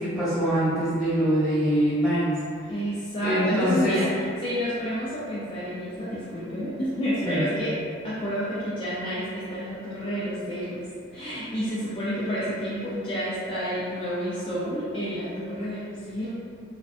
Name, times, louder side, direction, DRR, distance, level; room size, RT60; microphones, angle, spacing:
voice 1, 0.0-2.4 3.2-4.0 7.2-7.5, right 1 dB, 5° right, -13 dB, 1.4 m, -24 dB
voice 2, 2.7-7.8 8.0-10.8 11.1-16.3, equal, 25° left, -11 dB, 0.3 m, -30 dB
2.5 x 2.1 x 2.4 m, 2.4 s
head